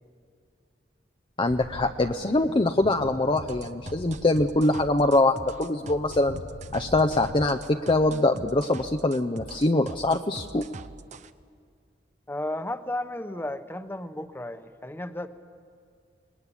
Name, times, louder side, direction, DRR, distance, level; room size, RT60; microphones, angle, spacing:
voice 1, 1.4-6.4 6.7-10.7, left 2 dB, 30° left, 7 dB, 0.6 m, -23 dB
sound 1, 1.5-7.5, left 2 dB, 80° left, 0.9 m, -43 dB
sound 2, 3.4-11.3, right 3 dB, 40° right, 0.8 m, -42 dB
voice 2, 12.3-15.3, left 1 dB, 10° left, 9 dB, 1.0 m, -33 dB
26.5 x 20.0 x 9.9 m, 2.2 s
head